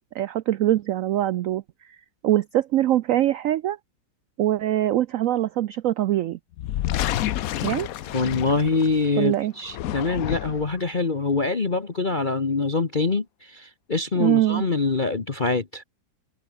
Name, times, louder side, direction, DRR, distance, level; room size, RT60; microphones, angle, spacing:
voice 1, 0.1-1.6 2.2-3.8 4.4-6.4 7.6-7.9 9.2-9.5 14.1-14.6, right 13 dB, 80° right, 0.7 m, -23 dB
sound 1, 6.5-9.1 9.6-10.8, left 13 dB, 65° left, 0.9 m, -29 dB
voice 2, 8.1-15.8, left 4 dB, 30° left, 1.3 m, -24 dB
omnidirectional pair, 2.0 m